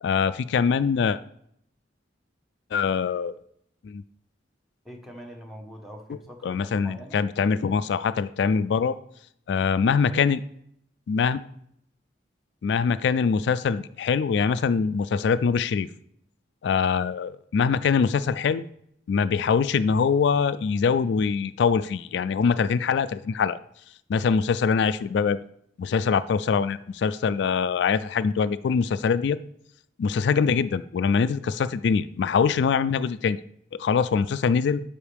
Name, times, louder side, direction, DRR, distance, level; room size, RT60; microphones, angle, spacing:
voice 1, 0.0-1.2 2.7-3.3 3.8-4.0 6.1-9.0 9.5-10.4 11.1-11.4 12.6-15.9 16.6-18.6 19.1-23.6 24.1-25.4 25.8-29.4 30.0-33.4 33.7-34.8, left 6 dB, 70° left, 13 dB, 0.3 m, -23 dB
voice 2, 4.8-7.2, equal, ahead, 2 dB, 1.2 m, -43 dB
12.0 x 5.3 x 3.4 m, 0.70 s
head